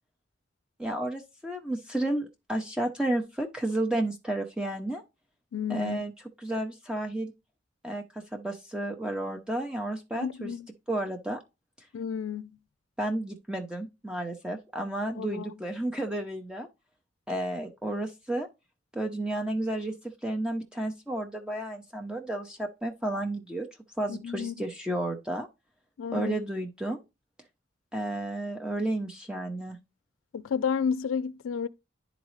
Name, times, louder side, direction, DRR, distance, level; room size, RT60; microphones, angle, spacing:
voice 1, 0.8-5.0 5.7-6.1 6.4-7.3 7.8-10.5 10.9-11.4 13.0-16.7 17.3-18.5 18.9-19.9 20.2-23.7 24.0-25.5 26.1-27.0 27.9-29.8, right 1 dB, 5° right, 0.7 m, -32 dB
voice 2, 5.5-6.0 10.2-10.7 11.9-12.5 15.2-15.5 24.1-24.5 26.0-26.4 30.3-31.7, left 6 dB, 85° left, 0.4 m, -31 dB
11.0 x 4.0 x 3.2 m
head